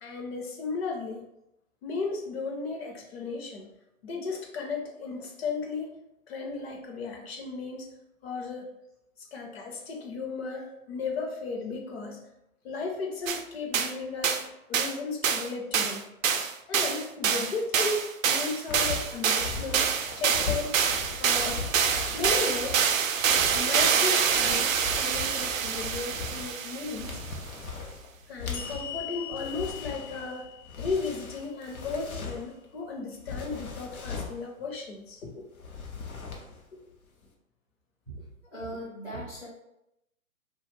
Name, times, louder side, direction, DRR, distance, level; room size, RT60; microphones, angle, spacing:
voice 1, 0.0-1.2 1.8-3.7 4.0-6.0 6.3-7.9 8.2-8.7 9.3-12.2 12.6-16.1 16.7-19.8 20.2-21.6 22.1-22.8 23.5-27.2 28.3-30.5 30.8-35.5 36.7-36.8, left 4 dB, 45° left, 1 dB, 0.7 m, -35 dB
sound 1, 13.3-13.4 13.7-13.9 14.2-14.4 14.7-14.9 15.2-15.5 15.7-27.2, right 7 dB, 70° right, 0.5 m, -26 dB
sound 2, 18.7-32.6 33.2-34.4 35.5-36.7 36.9-37.2, left 5 dB, 85° left, 0.8 m, -39 dB
sound 3, 28.5-31.9, left 9 dB, 65° left, 1.2 m, -42 dB
voice 2, 38.5-39.5, right 1 dB, 5° left, -13 dB, 0.4 m, -38 dB
2.5 x 2.3 x 3.2 m, 0.85 s
hypercardioid pair, 130°, 42 cm